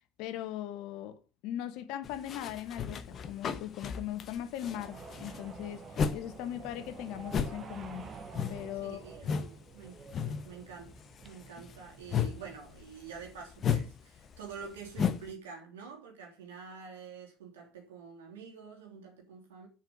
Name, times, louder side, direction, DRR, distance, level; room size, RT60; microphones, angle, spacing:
voice 1, 0.2-8.1 8.5-9.0 11.6-11.7, left 11 dB, 60° left, 1.3 m, -39 dB
sound 1, 2.0-6.3 6.5-9.6 9.8-10.5 10.8-15.3, left 7 dB, 40° left, 1.1 m, -34 dB
sound 2, 4.6-12.6, right 5 dB, 35° right, 1.4 m, -49 dB
voice 2, 8.8-10.9 11.2-19.7, right 6 dB, 75° right, 3.1 m, -47 dB
7.2 x 5.9 x 7.6 m
figure-of-eight pair, 65°, 0 cm